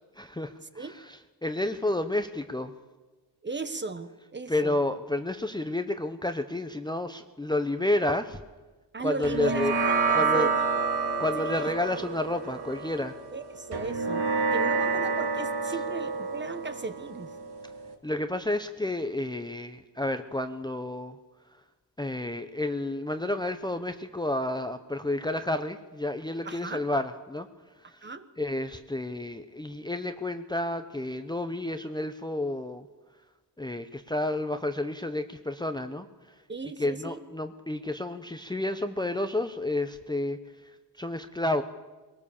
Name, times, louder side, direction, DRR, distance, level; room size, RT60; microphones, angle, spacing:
voice 1, 0.2-2.7 4.5-8.4 9.0-9.7 10.1-10.5 11.2-13.2 18.0-21.2 22.0-27.5 28.4-32.9 33.6-36.1 36.8-40.4 41.0-41.6, left 1 dB, 10° left, 8 dB, 0.7 m, -30 dB
voice 2, 3.4-4.8 8.9-10.5 11.4-11.7 13.3-17.3 26.4-26.8 28.0-28.3 36.5-37.2, right 4 dB, 25° right, 11 dB, 1.1 m, -36 dB
sound 1, 9.2-17.9, right 4 dB, 70° right, 2.2 m, -29 dB
22.5 x 18.5 x 7.1 m, 1.2 s
wide cardioid pair, 135°, 41 cm